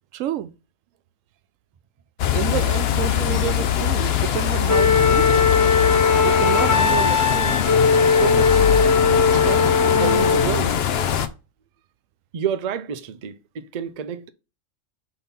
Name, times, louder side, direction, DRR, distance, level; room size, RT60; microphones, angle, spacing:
voice 1, 0.1-0.5 2.3-5.4 6.2-7.6 8.1-8.7 9.3-10.7, right 11 dB, 85° right, 1.0 m, -29 dB
sound 1, 2.2-11.3, left 9 dB, 60° left, 0.8 m, -22 dB
Wind instrument woodwind instrument, 4.7-10.5, left 5 dB, 25° left, 0.4 m, -19 dB
voice 2, 12.3-14.3, right 8 dB, 50° right, 0.5 m, -29 dB
5.4 x 4.0 x 5.7 m
omnidirectional pair, 1.3 m